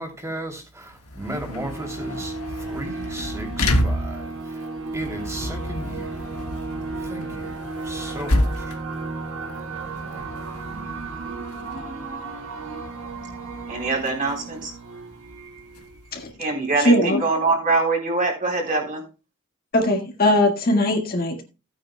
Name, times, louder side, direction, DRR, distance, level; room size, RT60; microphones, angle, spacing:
voice 1, 0.0-4.7 4.9-6.3 7.0-8.8, right 1 dB, 15° right, 2.8 m, -35 dB
sound 1, 0.9-16.3, left 1 dB, 80° left, 1.5 m, -31 dB
sound 2, 1.5-16.8, right 3 dB, 65° right, 1.5 m, -34 dB
voice 2, 13.7-14.7 16.4-19.1, right 3 dB, 40° right, 3.7 m, -23 dB
voice 3, 16.8-17.2 19.7-21.4, left 1 dB, 45° left, 1.7 m, -20 dB
15.5 x 9.2 x 2.2 m
head